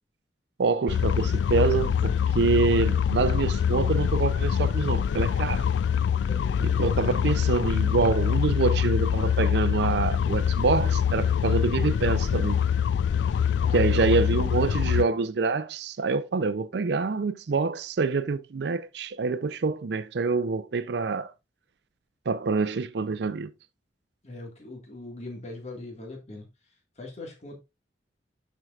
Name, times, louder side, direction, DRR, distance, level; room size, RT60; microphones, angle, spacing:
voice 1, 0.6-5.6 6.6-12.6 13.7-21.3 22.3-23.5, right 4 dB, 70° right, 0.5 m, -26 dB
sound 1, 0.9-15.1, left 8 dB, 80° left, 0.3 m, -24 dB
voice 2, 6.2-7.0 13.6-14.3 24.2-26.4 27.0-27.6, left 2 dB, 40° left, 1.7 m, -41 dB
12.0 x 4.6 x 2.3 m
head